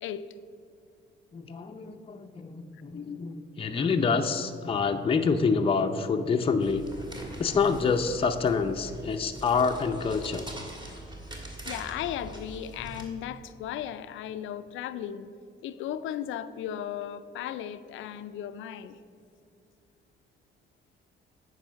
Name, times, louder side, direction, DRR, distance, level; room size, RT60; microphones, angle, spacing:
voice 1, 1.3-6.8 7.4-10.5, left 5 dB, 30° left, 5 dB, 0.5 m, -27 dB
sound 1, 6.6-13.0, right 1 dB, 20° right, 1.8 m, -42 dB
voice 2, 11.7-15.3 15.6-19.0, left 10 dB, 80° left, 13 dB, 0.4 m, -36 dB
9.0 x 5.4 x 5.7 m, 2.5 s
cardioid pair, 90°, 20 cm